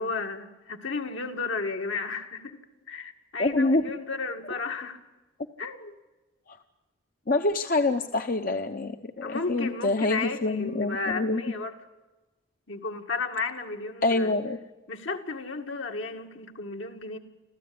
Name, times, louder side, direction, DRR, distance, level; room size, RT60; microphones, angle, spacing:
voice 1, 0.0-2.6 2.9-5.0 5.6-6.0 9.2-11.7 12.7-14.3 14.9-17.2, left 4 dB, 70° left, 4 dB, 2.1 m, -33 dB
voice 2, 3.4-3.8 6.5-6.6 7.3-11.4 14.0-14.6, left 2 dB, 45° left, 6 dB, 0.9 m, -26 dB
27.0 x 15.0 x 9.5 m, 1.1 s
head